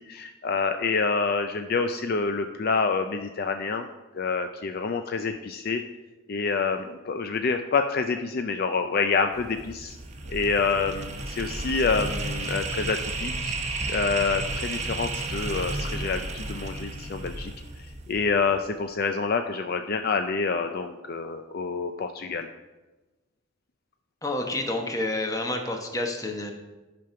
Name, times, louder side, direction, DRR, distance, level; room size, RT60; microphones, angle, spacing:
voice 1, 0.0-3.9 4.1-5.8 6.3-10.0 10.3-13.6 13.9-17.5 18.1-22.5, left 4 dB, 50° left, 7 dB, 0.5 m, -27 dB
sound 1, 9.3-18.5, right 2 dB, 35° right, 1.1 m, -33 dB
voice 2, 24.2-26.5, left 2 dB, 15° left, 4 dB, 1.1 m, -29 dB
11.0 x 5.2 x 5.7 m, 1.1 s
head